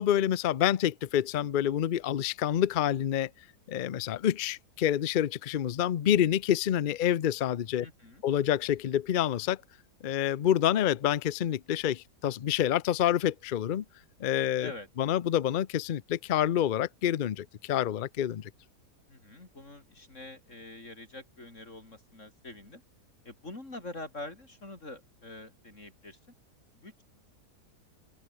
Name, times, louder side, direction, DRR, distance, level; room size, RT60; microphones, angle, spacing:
voice 1, 0.0-3.3 3.7-7.9 8.2-9.6 10.0-13.8 14.2-14.7 15.0-18.5, left 10 dB, 65° left, 0.5 m, -27 dB
voice 2, 7.8-8.2 14.6-14.9 19.1-22.8 23.2-26.2 26.7-27.0, left 2 dB, 45° left, 5.0 m, -45 dB
open air
omnidirectional pair, 1.7 m